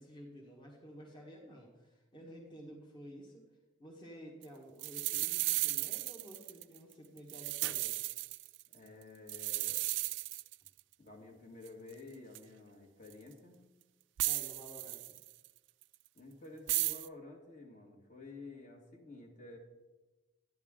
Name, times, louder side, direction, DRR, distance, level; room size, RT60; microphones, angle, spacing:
voice 1, 0.0-3.4 3.8-8.0 14.2-15.0, equal, 25° left, -3 dB, 1.4 m, -52 dB
sound 1, 4.4-4.5 4.8-6.8 7.2-8.7 9.3-10.8 11.7-11.8 12.3-12.4 13.1-13.2 14.2-15.5 16.7-17.1, right 19 dB, 75° right, 0.3 m, -35 dB
voice 2, 8.7-9.8 11.0-13.6 16.1-19.6, left 2 dB, 45° left, 1 dB, 1.8 m, -51 dB
10.5 x 10.5 x 3.7 m, 1.1 s
head